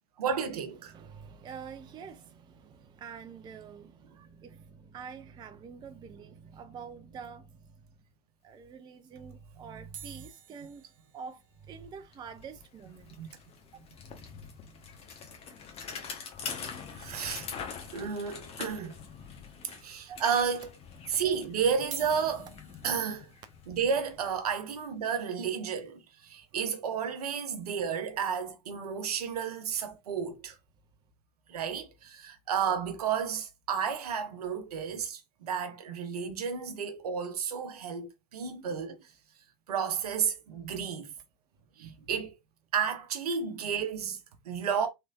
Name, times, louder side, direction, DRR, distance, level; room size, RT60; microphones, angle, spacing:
voice 1, 0.2-0.9 13.2-13.3 17.0-17.5 17.9-19.0 19.8-20.7 21.1-22.5 22.8-23.3 23.7-30.6 31.5-39.1 39.7-41.1 41.8-42.3 42.7-44.9, right 7 dB, 70° right, 0.8 m, -32 dB
voice 2, 0.9-7.7 8.4-10.8 11.1-13.2 13.7-13.8 17.9-18.1 20.1-20.2, right 6 dB, 20° right, 0.4 m, -46 dB
sound 1, 9.9-14.3 14.6-14.7 14.8-15.0 15.4-15.5 16.9-17.0 17.7-18.2 18.7-18.8 19.6-19.7 21.7-27.8 28.4-28.6, right 6 dB, 40° right, 1.0 m, -52 dB
Bicycle, 11.6-11.7 12.0-24.9, left 6 dB, 30° left, 0.9 m, -44 dB
3.3 x 3.0 x 2.4 m
figure-of-eight pair, 85°, 20 cm